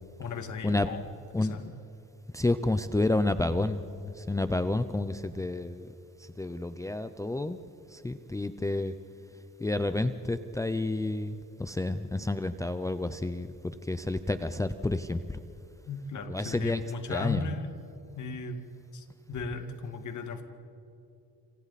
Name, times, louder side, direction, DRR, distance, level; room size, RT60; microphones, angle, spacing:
voice 1, 0.2-1.1 1.4-1.6 15.9-17.8 18.2-18.7 18.9-20.4, left 4 dB, 60° left, 7 dB, 2.1 m, -36 dB
voice 2, 1.3-1.7 2.3-5.9 6.4-7.6 7.9-8.9 9.6-15.4 16.3-16.8 17.1-17.4, left 2 dB, 10° left, 10 dB, 0.6 m, -30 dB
28.5 x 26.5 x 4.2 m, 2.8 s
cardioid pair, 140°, 34 cm